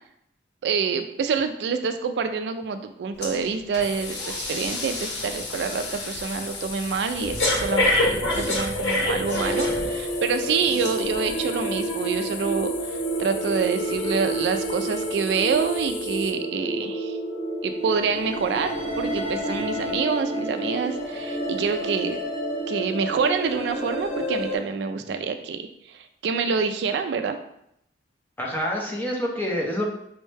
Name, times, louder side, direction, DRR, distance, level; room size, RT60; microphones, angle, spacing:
voice 1, 0.6-17.2 17.6-22.2 22.7-25.6 25.9-27.4, right 5 dB, 70° right, 8 dB, 0.3 m, -27 dB
Breathing, 3.2-3.4 3.7-10.2 10.7-10.9, left 1 dB, 70° left, 1.0 m, -27 dB
sound 1, 3.8-16.3, left 7 dB, 90° left, 0.4 m, -38 dB
sound 2, 9.2-24.6, right 1 dB, 40° left, 1.3 m, -29 dB
voice 2, 28.4-29.8, equal, 10° left, -2 dB, 0.7 m, -28 dB
5.3 x 2.1 x 3.2 m, 0.74 s
head